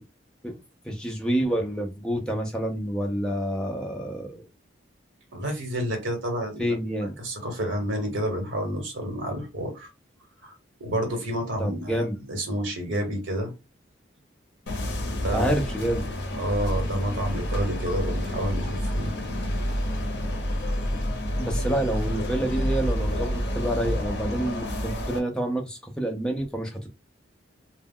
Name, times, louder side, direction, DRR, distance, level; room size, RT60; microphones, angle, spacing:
voice 1, 0.9-4.4 6.6-7.1 11.6-12.2 15.3-16.0 21.4-26.9, right 1 dB, 5° left, 0.4 m, -28 dB
voice 2, 5.3-6.7 7.2-9.9 10.4-10.5 10.8-13.5 15.2-15.5 16.4-19.1, equal, 85° right, 1.0 m, -29 dB
sound 1, 14.7-25.2, equal, 60° left, 0.6 m, -29 dB
2.2 x 2.1 x 3.5 m
head